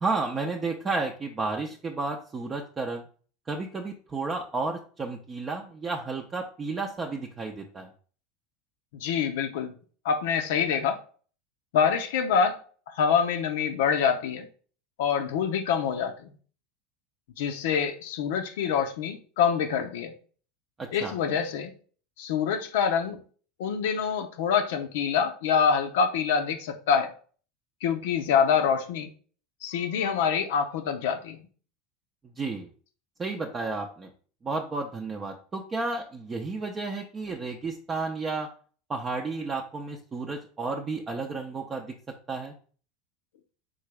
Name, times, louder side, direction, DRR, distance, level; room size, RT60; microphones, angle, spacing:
voice 1, 0.0-3.0 3.5-7.9 20.8-21.1 32.4-32.7 33.2-34.1 34.4-38.5 38.9-41.9 42.3-42.6, right 3 dB, 25° right, 0.6 m, -32 dB
voice 2, 8.9-9.7 10.0-11.0 11.7-12.6 12.9-14.5 15.0-16.2 17.4-20.1 20.9-21.7 22.2-23.2 23.6-27.1 27.8-29.1 29.6-31.4, left 7 dB, 70° left, 0.5 m, -25 dB
3.9 x 3.7 x 3.3 m
hypercardioid pair, 80°, 0 cm